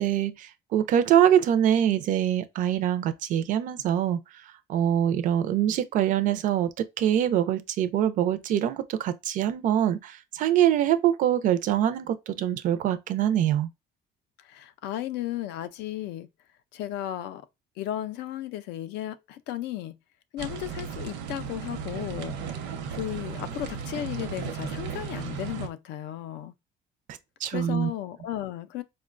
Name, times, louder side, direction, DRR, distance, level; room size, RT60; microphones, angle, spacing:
voice 1, 0.0-4.2 4.7-6.7 7.0-13.7 27.4-27.9, right 10 dB, 45° right, 0.4 m, -24 dB
voice 2, 14.4-16.3 16.7-17.5 17.8-19.9 20.3-22.6 22.9-26.5 27.5-28.8, left 13 dB, 75° left, 0.4 m, -34 dB
sound 1, 20.4-25.7, right 6 dB, 85° right, 0.8 m, -35 dB
4.4 x 2.1 x 2.4 m
cardioid pair, 175°, 18 cm